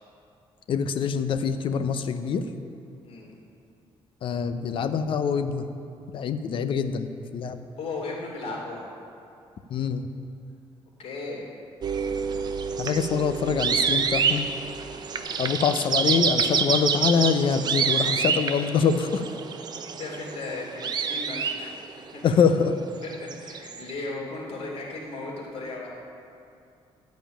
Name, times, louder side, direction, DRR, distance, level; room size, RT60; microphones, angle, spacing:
voice 1, 0.7-2.4 4.2-5.7 6.1-7.6 9.7-10.1 12.8-14.5 15.4-19.3 22.2-22.7, left 6 dB, 55° left, 9 dB, 0.7 m, -25 dB
voice 2, 7.7-8.9 11.0-11.5 19.9-21.6 21.9-22.3 23.0-25.9, left 3 dB, 70° left, -3 dB, 2.9 m, -36 dB
sound 1, 11.8-22.1 23.0-23.9, right 6 dB, 40° right, 0.7 m, -27 dB
12.5 x 5.2 x 8.9 m, 2.5 s
cardioid pair, 140°, 11 cm